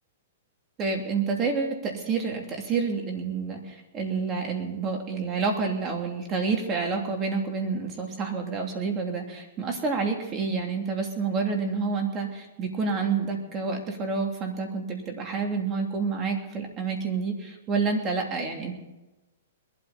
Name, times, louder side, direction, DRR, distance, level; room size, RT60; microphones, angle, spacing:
voice 1, 0.8-18.7, right 4 dB, 25° right, 2 dB, 2.8 m, -28 dB
21.0 x 12.5 x 4.3 m, 1.0 s
hypercardioid pair, 145°, 0 cm